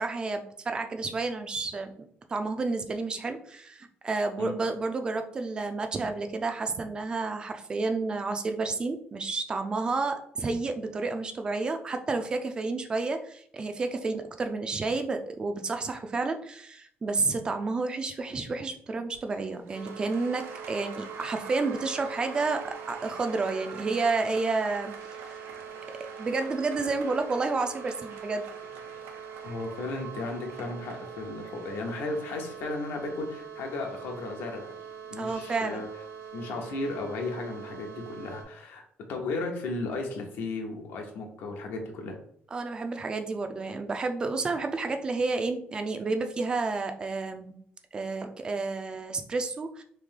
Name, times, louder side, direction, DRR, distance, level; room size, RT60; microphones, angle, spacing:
voice 1, 0.0-25.4 26.2-28.4 35.2-35.8 42.5-47.6 47.9-49.8, right 3 dB, 20° right, 7 dB, 0.4 m, -30 dB
Applause, 19.1-36.3, right 5 dB, 90° right, 0.6 m, -47 dB
sound 1, 19.7-38.4, right 7 dB, 75° right, 1.0 m, -44 dB
voice 2, 29.4-34.7 35.1-35.9 36.3-38.8 39.1-42.2, left 3 dB, 75° left, 2 dB, 0.9 m, -35 dB
3.3 x 2.6 x 3.6 m, 0.65 s
cardioid pair, 170°, 4 cm